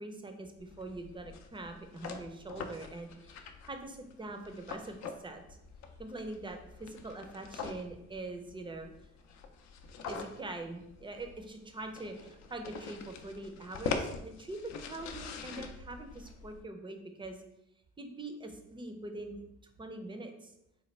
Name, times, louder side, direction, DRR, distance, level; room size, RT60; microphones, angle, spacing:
voice 1, 0.0-5.6 6.0-8.9 10.1-17.4 18.0-19.4 19.8-20.5, right 2 dB, 15° right, 5 dB, 0.5 m, -43 dB
sound 1, 0.6-16.6, left 5 dB, 65° left, 0.5 m, -44 dB
4.2 x 2.2 x 3.2 m, 0.83 s
cardioid pair, 90°, 30 cm